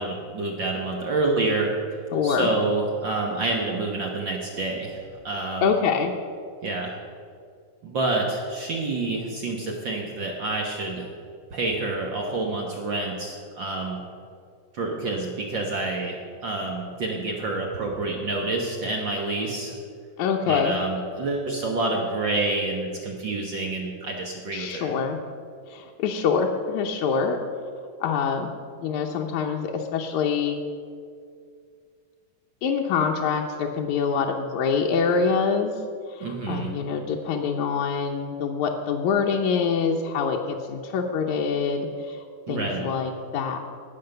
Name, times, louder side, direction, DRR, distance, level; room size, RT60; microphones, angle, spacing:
voice 1, 0.0-1.7 2.2-5.7 6.6-6.9 7.8-11.1 11.5-14.0 14.7-16.2 16.4-19.8 20.5-24.9 36.2-36.7 42.5-42.8, right 2 dB, 65° right, 0 dB, 1.1 m, -28 dB
voice 2, 2.1-2.5 5.6-6.1 20.2-20.8 24.5-25.2 25.7-27.4 28.0-28.5 28.8-30.6 32.6-35.7 36.1-43.6, left 5 dB, 75° left, 1 dB, 1.9 m, -25 dB
18.5 x 6.6 x 6.7 m, 2.2 s
omnidirectional pair, 3.8 m